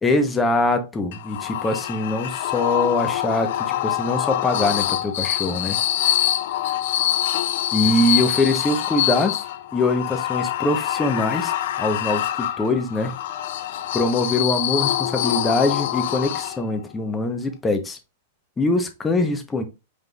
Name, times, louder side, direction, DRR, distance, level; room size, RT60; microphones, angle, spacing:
voice 1, 0.0-5.8 7.7-9.4 9.7-13.2 13.9-18.0 18.6-19.6, left 2 dB, 15° left, 6 dB, 0.8 m, -23 dB
sound 1, 1.1-16.8, left 13 dB, 65° left, 0.5 m, -25 dB
5.0 x 3.8 x 2.3 m, 0.27 s
hypercardioid pair, 140°, 0 cm